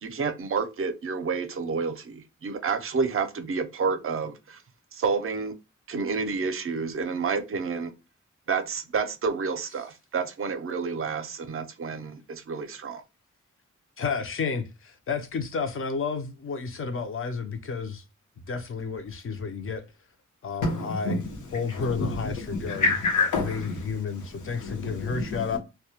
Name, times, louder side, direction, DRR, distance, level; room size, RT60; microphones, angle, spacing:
voice 1, 0.0-4.6 4.9-5.5 5.9-7.9 8.5-13.0, right 5 dB, 45° right, 0.5 m, -29 dB
voice 2, 14.0-18.0 18.5-19.8 20.4-21.2 21.5-22.8 23.4-25.6, left 5 dB, 45° left, 0.5 m, -31 dB
voice 3, 20.6-25.6, left 3 dB, 80° left, 0.7 m, -29 dB
2.2 x 2.1 x 2.8 m
wide cardioid pair, 160°, 30 cm